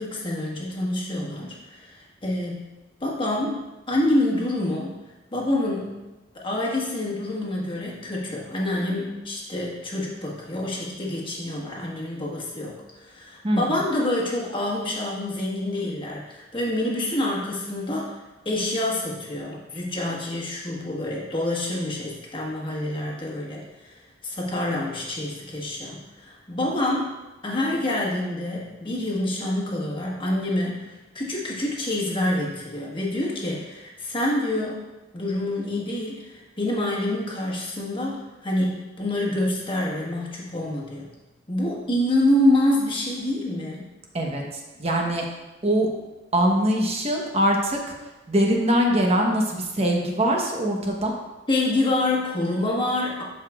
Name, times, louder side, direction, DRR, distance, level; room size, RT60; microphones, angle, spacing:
voice 1, 0.0-2.7 3.0-5.0 5.3-6.0 6.4-18.2 18.4-27.1 27.4-34.9 35.1-41.1 41.5-43.9 51.5-53.2, left 1 dB, 25° left, -3 dB, 1.4 m, -27 dB
voice 2, 13.4-13.8 44.1-44.4 44.8-45.3 45.6-45.9 46.3-47.8 48.3-51.1, equal, 30° right, 0 dB, 1.0 m, -22 dB
12.0 x 5.0 x 2.4 m, 1.1 s
head